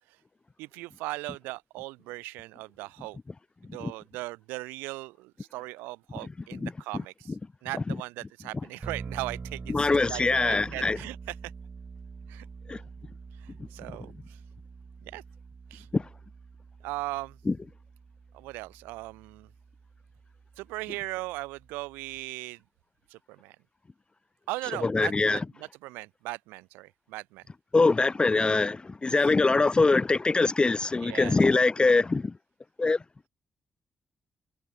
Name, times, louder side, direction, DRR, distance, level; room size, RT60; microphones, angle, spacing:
voice 1, 0.6-3.2 3.7-7.4 7.6-11.3 12.3-12.5 13.4-14.4 15.1-15.2 15.7-15.9 16.8-17.4 18.3-19.5 20.6-22.6 23.1-23.6 24.5-27.4 29.2-29.3 31.0-31.4, right 21 dB, 85° right, 3.8 m, -38 dB
sound 1, 8.8-22.2, right 5 dB, 45° right, 5.4 m, -45 dB
voice 2, 9.7-11.0 12.7-12.8 15.9-16.1 17.5-17.6 24.8-25.4 27.7-32.3 32.8-33.0, left 3 dB, 30° left, 0.6 m, -23 dB
hypercardioid pair, 45°, 3 cm